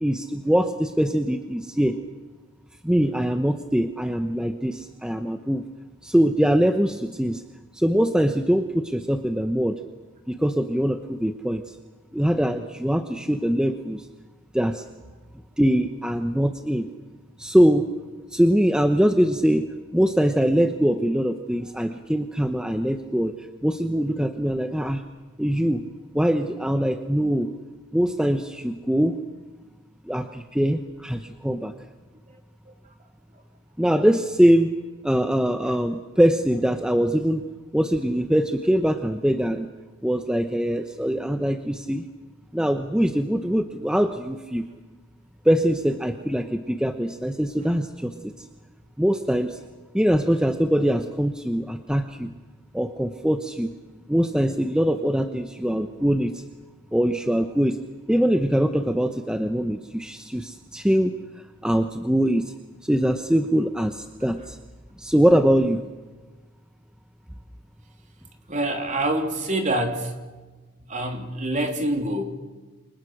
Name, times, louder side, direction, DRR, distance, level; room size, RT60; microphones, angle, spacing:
voice 1, 0.0-2.0 2.8-5.6 6.0-7.4 7.7-9.8 10.3-11.6 12.1-14.1 14.5-14.8 15.6-16.9 17.4-17.9 18.3-23.3 23.6-25.0 25.4-25.8 26.1-27.5 27.9-29.2 30.0-31.7 33.8-34.7 35.0-37.4 37.7-39.7 40.0-42.0 42.5-44.7 45.4-48.3 49.0-49.6 49.9-52.3 52.7-53.7 54.1-56.4 56.9-57.8 58.1-61.2 61.6-62.5 62.8-64.6 65.0-65.8, equal, 5° right, 7 dB, 0.9 m, -22 dB
voice 2, 68.5-70.1 70.9-72.2, right 1 dB, 35° right, 4 dB, 3.3 m, -26 dB
29.0 x 25.0 x 6.5 m, 1.2 s
head